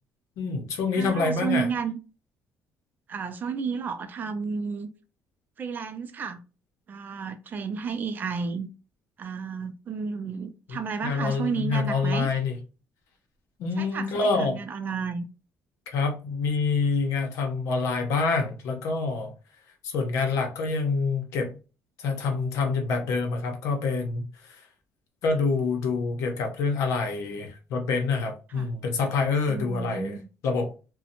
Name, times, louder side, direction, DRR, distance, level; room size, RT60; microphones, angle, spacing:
voice 1, 0.4-1.7 10.7-10.8 11.0-12.6 13.6-14.6 15.9-19.3 19.8-21.6 22.0-24.3 25.2-30.2 30.4-30.7, left 4 dB, 75° left, 0.8 m, -26 dB
voice 2, 0.9-2.0 3.1-4.9 5.6-6.4 6.9-8.7 9.2-12.3 13.8-15.2 28.5-28.7 29.5-30.2, right 5 dB, 35° right, 0.4 m, -32 dB
2.8 x 2.1 x 2.6 m
cardioid pair, 140°, 5 cm